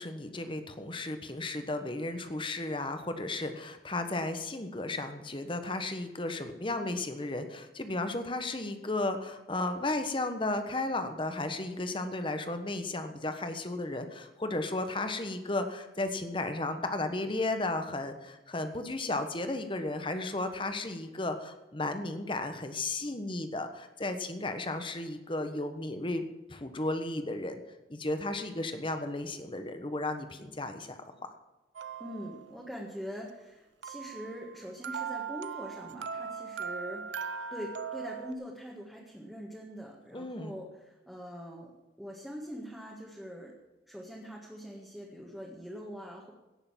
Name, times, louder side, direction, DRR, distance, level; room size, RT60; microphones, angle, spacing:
voice 1, 0.0-27.6 27.9-31.0 40.1-40.5, left 2 dB, 30° left, 8 dB, 1.2 m, -34 dB
sound 1, 31.8-32.7 33.8-38.3, right 6 dB, 85° right, 0.6 m, -39 dB
voice 2, 32.0-41.7 42.0-43.5 43.9-46.3, equal, ahead, -3 dB, 1.7 m, -43 dB
17.0 x 6.8 x 7.4 m, 1.1 s
head